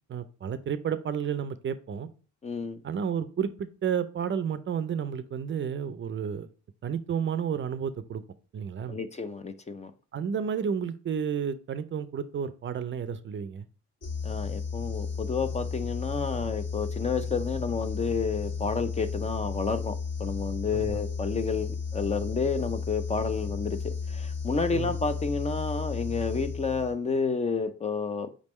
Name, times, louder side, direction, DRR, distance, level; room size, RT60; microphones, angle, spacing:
voice 1, 0.1-2.1 2.8-6.5 6.8-8.2 8.5-9.0 10.1-13.7 20.7-21.0 24.7-25.0, right 7 dB, 40° right, 13 dB, 0.4 m, -31 dB
voice 2, 2.4-2.8 8.9-9.9 14.2-28.3, left 4 dB, 25° left, 10 dB, 0.4 m, -30 dB
sound 1, 14.0-27.1, left 5 dB, 55° left, 1.9 m, -33 dB
5.1 x 3.4 x 3.1 m, 0.38 s
cardioid pair, 90°, 30 cm